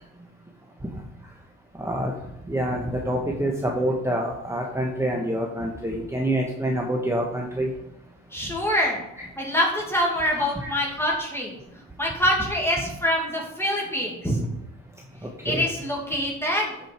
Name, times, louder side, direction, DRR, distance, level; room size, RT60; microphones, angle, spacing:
voice 1, 2.5-7.7 10.4-10.7 15.5-15.6, right 1 dB, 10° right, -1 dB, 1.3 m, -26 dB
voice 2, 8.3-9.0 9.4-11.5 12.0-14.4 15.4-16.7, equal, 10° left, -3 dB, 2.2 m, -25 dB
13.0 x 5.1 x 4.6 m, 0.87 s
cardioid pair, 90°, 30 cm